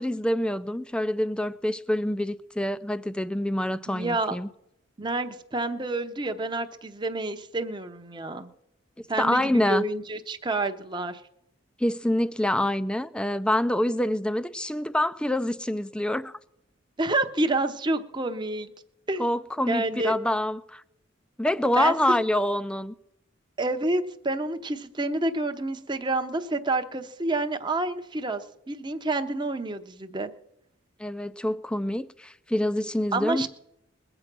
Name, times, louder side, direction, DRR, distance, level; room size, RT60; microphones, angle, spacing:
voice 1, 0.0-4.5 9.2-9.8 11.8-16.3 19.2-20.8 21.4-22.9 31.0-33.5, left 1 dB, 5° left, 0.4 m, -26 dB
voice 2, 3.9-4.3 5.0-8.5 9.1-11.2 17.0-18.7 19.1-19.3 19.7-20.2 21.8-21.9 23.6-30.3 33.1-33.5, right 2 dB, 25° right, 0.8 m, -28 dB
21.0 x 7.9 x 6.0 m
head